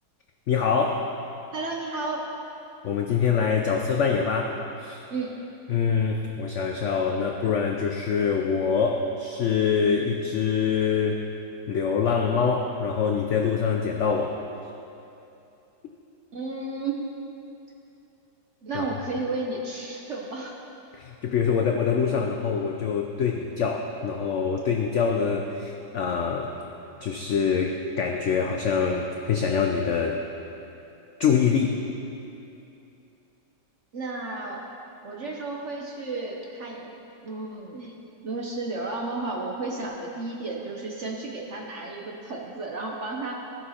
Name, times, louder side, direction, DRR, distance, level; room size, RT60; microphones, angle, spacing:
voice 1, 0.5-1.1 2.8-5.1 5.7-11.2 11.7-14.4 18.7-18.9 20.9-26.5 27.0-30.2 31.2-31.8, left 6 dB, 80° left, 2 dB, 0.6 m, -25 dB
voice 2, 1.5-2.2 5.1-5.4 16.3-17.0 18.6-20.5 33.9-34.6 35.0-37.0 37.2-37.9 38.2-43.4, right 3 dB, 55° right, -1 dB, 0.9 m, -32 dB
15.0 x 5.7 x 4.2 m, 2.8 s
omnidirectional pair, 1.9 m